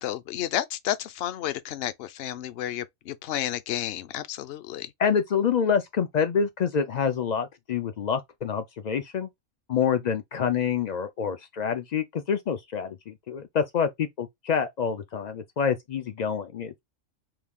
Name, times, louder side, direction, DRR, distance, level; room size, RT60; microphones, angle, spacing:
voice 1, 0.0-4.9, left 12 dB, 60° left, 0.7 m, -31 dB
voice 2, 5.0-9.3 9.7-16.8, left 7 dB, 90° left, 0.3 m, -27 dB
4.9 x 2.3 x 3.5 m
omnidirectional pair, 1.4 m